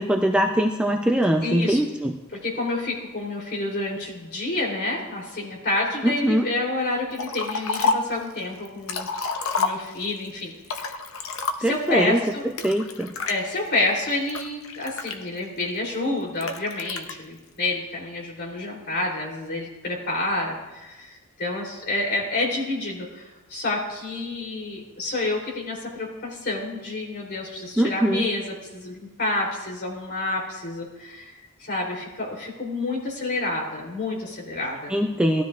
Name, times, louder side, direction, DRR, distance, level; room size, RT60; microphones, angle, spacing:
voice 1, 0.0-2.1 6.0-6.5 11.6-12.2 12.6-13.1 27.8-28.2 34.9-35.4, right 1 dB, 5° right, 1 dB, 0.5 m, -22 dB
voice 2, 1.4-1.8 2.4-9.1 9.5-11.0 11.6-12.4 13.3-34.9, left 2 dB, 45° left, -2 dB, 3.4 m, -29 dB
Liquid, 7.2-8.2 8.7-10.2 10.6-11.9 12.6-13.4 14.0-15.6 16.4-17.1, left 4 dB, 65° left, 0.8 m, -28 dB
18.0 x 12.5 x 2.5 m, 1.1 s
head